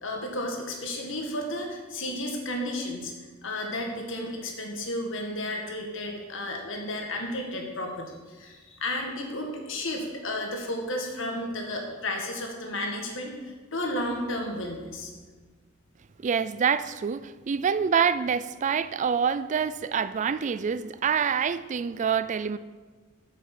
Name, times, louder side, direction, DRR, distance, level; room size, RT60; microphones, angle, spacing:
voice 1, 0.0-3.1 3.4-15.1, left 1 dB, 65° left, 1.9 m, -33 dB
voice 2, 16.2-22.6, right 7 dB, 35° right, 0.3 m, -26 dB
7.5 x 7.3 x 7.2 m
head